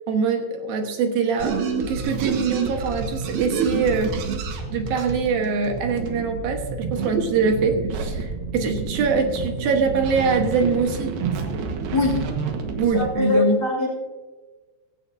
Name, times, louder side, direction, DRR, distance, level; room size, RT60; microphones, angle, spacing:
voice 1, 0.1-1.6 1.9-4.1 4.7-11.1 12.8-13.6, right 4 dB, 75° right, 4 dB, 3.1 m, -23 dB
sound 1, 1.4-13.1, right 5 dB, 90° right, 3.4 m, -28 dB
voice 2, 11.9-12.3 12.9-13.9, left 2 dB, 30° left, 0 dB, 3.3 m, -22 dB
16.5 x 16.0 x 2.7 m, 1.3 s
omnidirectional pair, 4.3 m